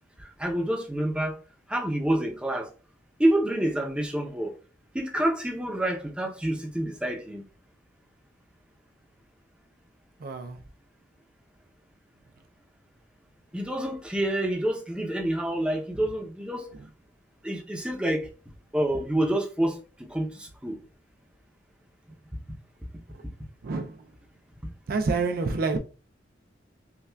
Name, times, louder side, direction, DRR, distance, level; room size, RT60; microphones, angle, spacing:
voice 1, 0.2-1.4 1.7-2.7 3.2-4.5 4.9-7.4 13.5-16.7 17.4-18.3 18.7-19.8 20.1-20.8, right 1 dB, 5° right, 0.6 m, -27 dB
voice 2, 10.2-10.6 23.6-24.0 24.9-25.8, right 3 dB, 50° right, 0.4 m, -27 dB
5.5 x 2.3 x 2.2 m
head